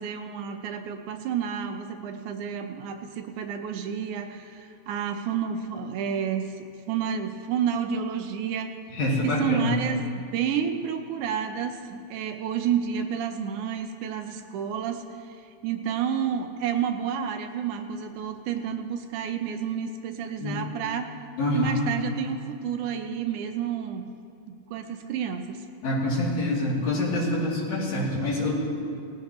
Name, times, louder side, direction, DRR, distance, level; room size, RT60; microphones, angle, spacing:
voice 1, 0.0-8.7 9.2-21.2 21.5-24.1 24.7-25.7, right 8 dB, 80° right, 6 dB, 2.2 m, -30 dB
voice 2, 8.9-9.7 20.4-20.6 21.4-21.8 25.8-28.6, left 1 dB, 65° left, -6 dB, 4.0 m, -26 dB
18.5 x 15.0 x 3.0 m, 2.5 s
omnidirectional pair, 3.5 m